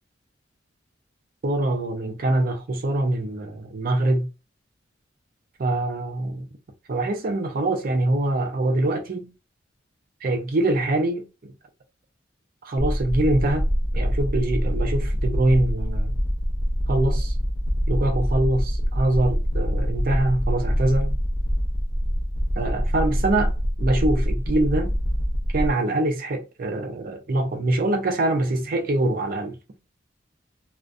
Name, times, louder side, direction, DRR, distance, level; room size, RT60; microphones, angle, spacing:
voice 1, 1.4-4.3 5.6-6.5 6.9-9.3 10.2-11.5 12.6-13.7 13.9-16.1 16.9-17.3 17.9-21.2 22.6-23.5 23.8-25.0 25.5-29.6, right 2 dB, 50° right, 0.5 m, -24 dB
sound 1, 12.8-25.7, equal, 20° left, 0.4 m, -25 dB
2.5 x 2.1 x 2.4 m
head